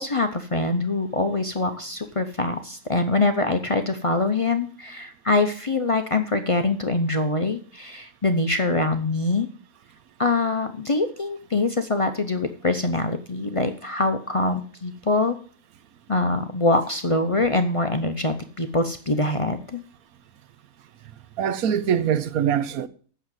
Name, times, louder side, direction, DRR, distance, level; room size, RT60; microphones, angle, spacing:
voice 1, 0.0-9.5 10.2-15.4 16.1-19.8, left 2 dB, 40° left, 0.4 m, -24 dB
voice 2, 21.4-22.9, right 9 dB, 70° right, 1.1 m, -23 dB
8.6 x 6.6 x 7.6 m
omnidirectional pair, 1.7 m